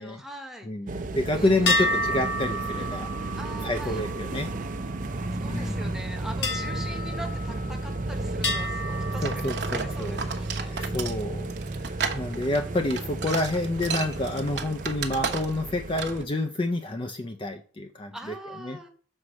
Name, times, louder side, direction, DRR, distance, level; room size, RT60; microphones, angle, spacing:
voice 1, 0.0-0.7 1.0-2.1 3.4-4.0 5.0-10.8 13.5-13.7 18.1-18.9, right 1 dB, ahead, 4 dB, 0.9 m, -43 dB
voice 2, 0.6-3.1 3.6-4.5 5.5-5.9 9.2-10.2 10.7-11.5 11.8-18.3 18.6-18.8, left 2 dB, 25° left, 6 dB, 0.4 m, -29 dB
sound 1, 0.9-16.2, right 2 dB, 45° right, 0.5 m, -33 dB
sound 2, 1.7-5.3 6.4-8.0 8.4-10.1, left 1 dB, 65° left, 1.3 m, -31 dB
sound 3, 9.2-15.7 16.0-16.2, right 5 dB, 60° right, 0.9 m, -33 dB
6.4 x 4.2 x 6.2 m, 0.42 s
head